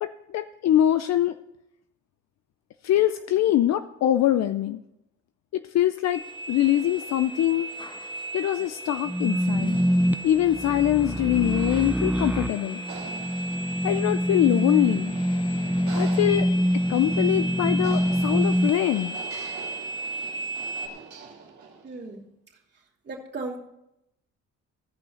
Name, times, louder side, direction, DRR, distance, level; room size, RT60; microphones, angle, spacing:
voice 1, 0.0-1.4 2.8-4.8 5.5-6.2 6.5-7.7 8.3-9.8 10.2-12.8 13.8-15.1 15.9-16.5 16.9-19.2, left 12 dB, 60° left, 11 dB, 0.5 m, -23 dB
sound 1, 6.1-20.9, right 2 dB, 15° left, 0.8 m, -36 dB
sound 2, 9.1-18.7, equal, 5° right, 0.5 m, -25 dB
sound 3, 9.7-22.0, right 5 dB, 70° right, 2.0 m, -44 dB
voice 2, 21.8-22.2 23.1-23.6, right 3 dB, 35° right, -3 dB, 2.6 m, -35 dB
15.5 x 5.6 x 5.6 m, 0.86 s
cardioid pair, 90°, 30 cm